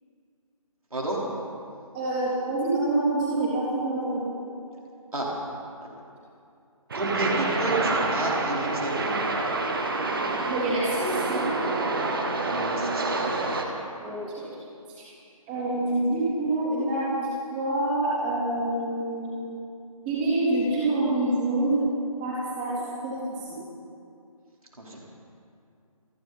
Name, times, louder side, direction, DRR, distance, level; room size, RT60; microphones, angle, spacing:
voice 1, 1.9-4.3 10.5-11.5 14.0-14.5 14.9-15.0 15.5-19.6 20.1-21.8 22.2-23.6, right 2 dB, 15° right, -8 dB, 3.6 m, -27 dB
sound 1, 6.9-13.6, right 3 dB, 40° right, 1.4 m, -27 dB
voice 2, 6.9-9.4 12.5-13.4 24.8-25.0, right 2 dB, 75° right, -4 dB, 4.3 m, -31 dB
28.5 x 10.5 x 4.3 m, 2.5 s
figure-of-eight pair, 150°, 19 cm